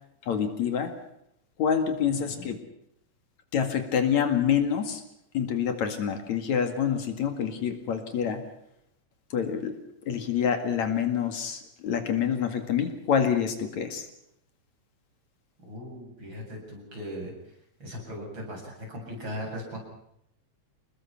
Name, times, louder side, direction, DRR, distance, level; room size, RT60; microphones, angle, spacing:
voice 1, 0.3-0.9 1.6-2.6 3.5-5.0 5.3-8.4 9.3-9.7 10.1-14.0, left 8 dB, 70° left, 7 dB, 3.4 m, -27 dB
voice 2, 2.1-2.4 15.6-17.3 17.8-19.8, equal, 40° right, 0 dB, 8.6 m, -38 dB
27.5 x 20.5 x 5.9 m, 0.77 s
omnidirectional pair, 3.4 m